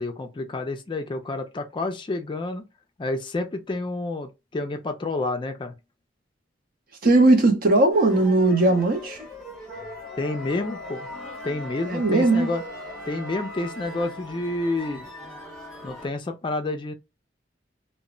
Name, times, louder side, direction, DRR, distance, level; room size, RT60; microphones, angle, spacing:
voice 1, 0.0-2.6 3.0-5.7 10.2-11.1 11.4-12.6 13.1-15.1 15.8-16.9, left 2 dB, 25° left, 0.4 m, -29 dB
voice 2, 7.0-9.2 11.9-12.5, right 2 dB, 50° right, 0.7 m, -18 dB
sound 1, 7.9-16.1, equal, 5° left, 0.8 m, -41 dB
Wind instrument woodwind instrument, 9.7-14.3, left 1 dB, 25° right, 0.9 m, -41 dB
2.1 x 2.0 x 3.7 m
head